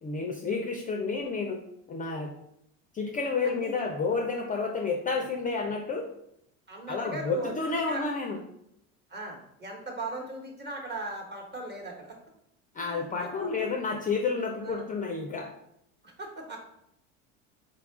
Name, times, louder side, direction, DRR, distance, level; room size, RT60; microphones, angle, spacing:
voice 1, 0.0-1.6 1.9-2.3 2.9-6.0 6.9-8.4 12.7-15.5, left 4 dB, 25° left, 2 dB, 0.4 m, -30 dB
voice 2, 6.7-7.5 7.9-8.1 9.1-12.2 12.8-13.7 14.6-14.9 16.0-16.6, right 2 dB, 25° right, 1 dB, 1.1 m, -39 dB
4.6 x 2.3 x 3.5 m, 0.78 s
supercardioid pair, 100°, 38 cm